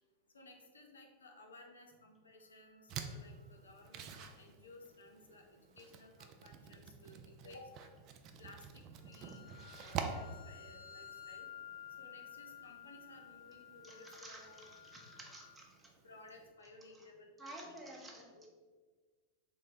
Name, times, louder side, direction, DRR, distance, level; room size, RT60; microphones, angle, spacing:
voice 1, 0.3-7.9 8.4-9.5 9.8-11.5 12.0-14.7 16.0-17.6 18.3-18.5, left 2 dB, 70° left, 3 dB, 0.4 m, -57 dB
sound 1, 2.4-2.8 3.3-3.5 9.0-15.5, left 10 dB, 85° right, 0.9 m, -54 dB
sound 2, 2.9-16.5, right 6 dB, 40° right, 0.3 m, -49 dB
voice 2, 13.8-15.9 17.4-18.3, right 1 dB, 10° right, -2 dB, 0.7 m, -52 dB
3.6 x 2.1 x 4.0 m, 1.4 s
figure-of-eight pair, 90°, 0 cm